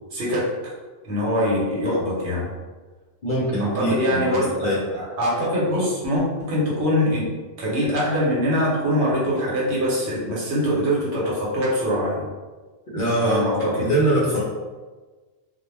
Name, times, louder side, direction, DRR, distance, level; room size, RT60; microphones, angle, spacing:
voice 1, 0.1-0.7 1.0-2.5 3.6-7.3 7.6-12.3 13.2-13.9, equal, 70° right, -5 dB, 1.1 m, -23 dB
voice 2, 3.2-4.8 12.9-14.4, right 1 dB, 55° left, -6 dB, 0.6 m, -23 dB
2.3 x 2.1 x 3.1 m, 1.3 s
omnidirectional pair, 1.2 m